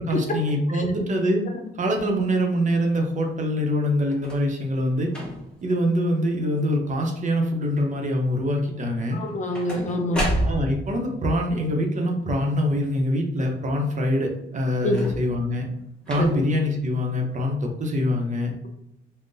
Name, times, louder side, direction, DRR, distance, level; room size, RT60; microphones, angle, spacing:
voice 1, 0.0-1.4 1.7-5.1 5.6-9.2 10.4-15.7 16.1-18.5, equal, 40° right, 2 dB, 0.6 m, -24 dB
sound 1, 4.1-4.5 5.1-5.6 6.2-6.6 6.9-7.4 9.1-11.0 14.8-15.5 16.1-16.6 17.5-17.6, equal, 5° left, 0.9 m, -30 dB
voice 2, 9.1-10.3 14.8-15.0 16.2-16.4, left 1 dB, 40° left, 4 dB, 0.4 m, -26 dB
3.7 x 2.1 x 2.6 m, 0.84 s
cardioid pair, 110°, 20 cm